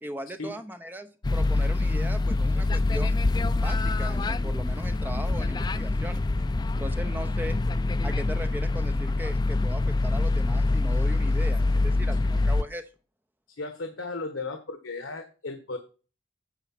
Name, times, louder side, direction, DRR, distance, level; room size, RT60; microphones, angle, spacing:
voice 1, 0.0-3.2 3.5-6.4 6.8-7.6 8.0-12.8, equal, 10° right, 7 dB, 0.9 m, -38 dB
sound 1, 1.2-12.6, left 2 dB, 20° left, 0.3 m, -25 dB
voice 2, 13.6-15.8, left 3 dB, 80° left, 7 dB, 1.2 m, -35 dB
9.3 x 4.8 x 5.9 m, 0.34 s
head